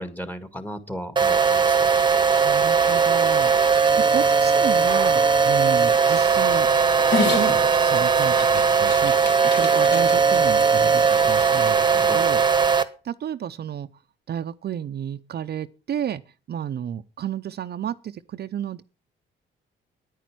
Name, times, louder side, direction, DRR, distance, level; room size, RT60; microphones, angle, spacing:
voice 1, 0.0-1.9 12.0-12.2, equal, 10° left, 1.9 m, -35 dB
sound 1, 1.2-12.8, right 6 dB, 20° right, 1.2 m, -19 dB
voice 2, 2.4-3.5 4.0-6.7 7.2-12.4 13.0-13.9 14.3-16.2 16.5-18.8, right 9 dB, 55° right, 0.7 m, -32 dB
Dog, 7.0-12.3, left 4 dB, 60° left, 3.9 m, -32 dB
10.0 x 9.4 x 6.1 m
cardioid pair, 90°, 20 cm